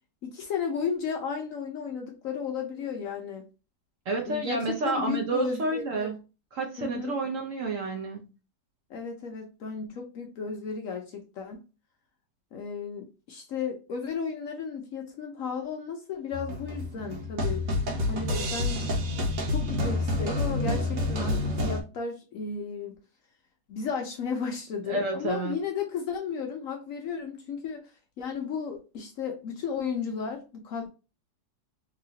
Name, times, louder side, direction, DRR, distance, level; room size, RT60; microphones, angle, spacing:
voice 1, 0.2-3.5 4.2-6.2 6.8-7.1 8.9-11.6 12.5-17.6 18.1-18.9 19.5-23.0 23.7-27.8 28.2-30.9, left 6 dB, 75° left, 3 dB, 0.7 m, -34 dB
voice 2, 4.1-6.1 6.5-8.3 24.9-25.5, right 3 dB, 65° right, 2 dB, 0.8 m, -30 dB
sound 1, 16.3-21.8, left 1 dB, 85° right, 1.5 m, -28 dB
3.1 x 2.9 x 2.7 m, 0.31 s
omnidirectional pair, 2.0 m